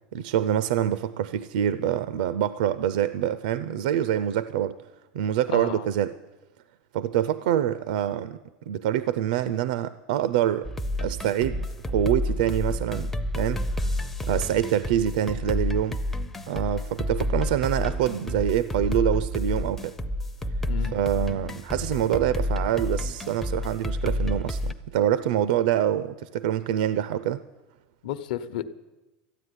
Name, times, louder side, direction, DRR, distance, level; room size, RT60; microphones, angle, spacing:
voice 1, 0.1-4.7 5.1-6.1 6.9-8.4 8.7-10.7 11.0-13.1 13.4-13.9 14.2-16.0 16.5-20.0 20.8-27.4, right 10 dB, 65° right, 14 dB, 0.5 m, -25 dB
voice 2, 5.5-5.9 20.7-21.0 28.0-28.6, left 11 dB, 65° left, 11 dB, 0.9 m, -32 dB
sound 1, 10.6-24.7, left 1 dB, 5° left, 0.5 m, -29 dB
14.0 x 9.7 x 9.7 m, 1.1 s
supercardioid pair, 175°, 5 cm